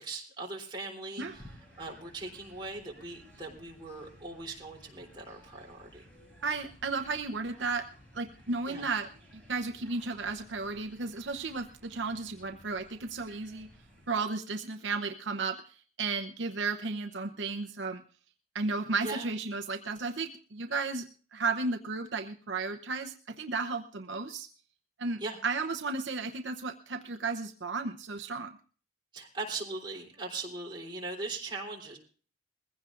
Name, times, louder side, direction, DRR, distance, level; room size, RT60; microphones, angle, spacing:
voice 1, 0.0-1.5 1.8-6.1 8.6-8.9 19.0-19.3 25.2-25.4 29.1-32.0, right 3 dB, 25° right, -2 dB, 3.5 m, -40 dB
sound 1, 1.2-14.1, equal, 5° left, 6.4 m, -56 dB
voice 2, 6.4-7.9 8.1-13.7 14.1-18.0 18.5-24.5 25.0-28.6, right 4 dB, 75° right, 6 dB, 0.8 m, -34 dB
21.5 x 16.0 x 2.5 m, 0.41 s
head